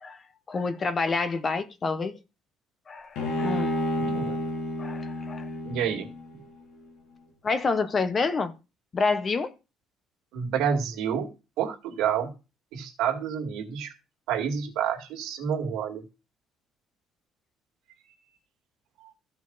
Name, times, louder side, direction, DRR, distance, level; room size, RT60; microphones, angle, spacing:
voice 1, 0.5-2.2 2.9-3.8 4.8-5.5 7.4-8.5 8.9-9.5, left 4 dB, 25° left, 0.7 m, -28 dB
Bowed string instrument, 3.2-6.4, left 1 dB, 75° left, 2.2 m, -30 dB
voice 2, 4.0-4.5 5.6-6.1 10.3-11.3 11.6-12.3 12.7-13.9 14.3-16.0 19.0-19.1, right 8 dB, 80° right, 2.1 m, -29 dB
14.5 x 5.3 x 3.9 m
cardioid pair, 175°, 0 cm